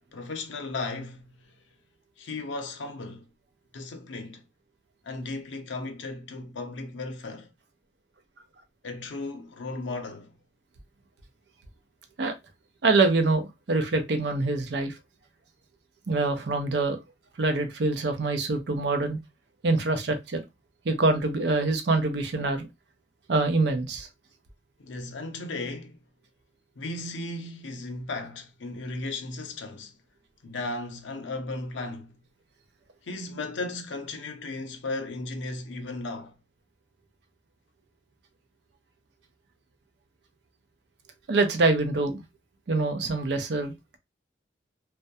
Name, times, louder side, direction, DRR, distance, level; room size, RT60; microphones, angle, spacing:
voice 1, 0.1-1.3 2.2-3.3 3.7-4.4 5.0-7.5 8.8-10.4 24.8-26.0 26.8-29.9 30.4-32.2 33.0-36.3, left 2 dB, 80° left, 0.5 m, -35 dB
voice 2, 12.8-15.0 16.1-17.0 17.4-19.2 19.6-20.4 20.8-22.7 23.3-24.1 41.3-42.2 42.7-43.7, right 3 dB, 65° right, 0.5 m, -25 dB
2.2 x 2.1 x 2.6 m
head